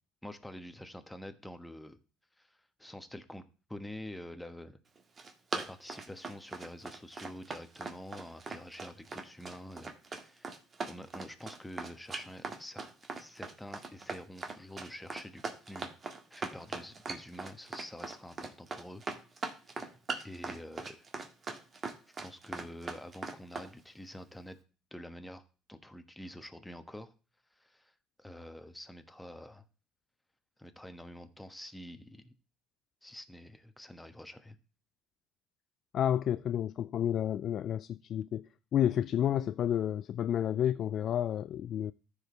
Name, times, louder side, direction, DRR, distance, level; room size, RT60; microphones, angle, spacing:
voice 1, 0.2-2.0 2.4-3.4 3.7-4.8 5.5-10.6 10.9-12.9 13.2-19.0 19.7-19.9 20.2-21.1 22.2-24.6 24.9-25.4 25.7-27.1 27.5-29.6 30.6-32.3 33.0-34.6, left 1 dB, 5° left, 1.3 m, -47 dB
Run, 5.0-23.7, right 4 dB, 35° right, 1.7 m, -40 dB
voice 2, 35.9-41.9, left 10 dB, 55° left, 0.3 m, -30 dB
14.0 x 5.1 x 3.2 m
supercardioid pair, 75°, 0 cm